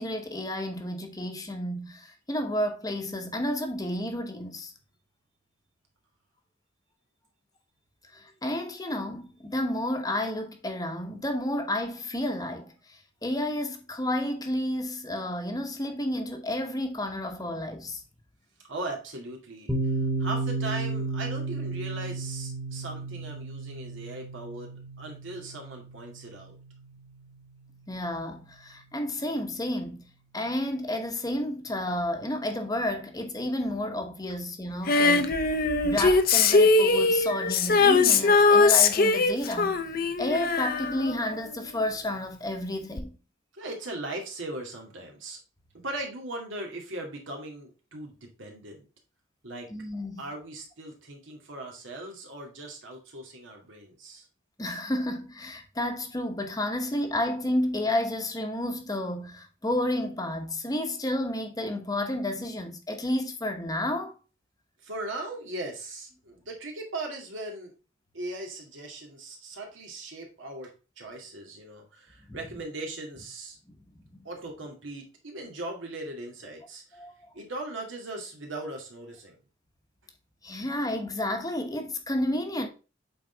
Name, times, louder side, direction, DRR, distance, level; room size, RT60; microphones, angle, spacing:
voice 1, 0.0-4.7 8.1-18.0 27.9-30.0 30.3-35.3 35.8-39.8 40.2-43.2 49.7-50.2 54.6-64.2 72.3-72.4 74.1-74.3 77.0-77.1 80.4-82.7, left 1 dB, 20° left, 1.0 m, -31 dB
voice 2, 18.7-19.9 20.2-26.6 43.5-45.4 45.8-48.9 49.4-49.7 50.2-54.3 64.8-67.7 68.1-73.6 74.2-77.0 77.3-79.4, right 2 dB, 75° right, 2.3 m, -39 dB
Piano, 19.7-27.1, right 3 dB, 5° right, 1.3 m, -33 dB
Female singing, 34.9-41.8 43.0-43.1, left 4 dB, 50° left, 0.7 m, -21 dB
8.4 x 4.0 x 3.9 m
head